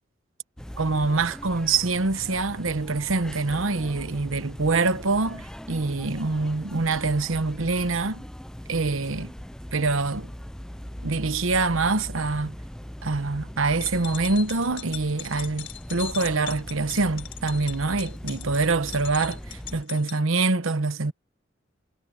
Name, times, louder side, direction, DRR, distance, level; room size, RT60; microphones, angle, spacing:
sound 1, 0.6-19.8, equal, 5° left, 0.4 m, -40 dB
voice 1, 0.8-8.2 8.7-9.3 9.7-10.3 11.0-12.6 13.0-21.1, right 3 dB, 85° right, 1.1 m, -25 dB
sound 2, 13.6-20.2, left 13 dB, 70° left, 6.5 m, -39 dB
head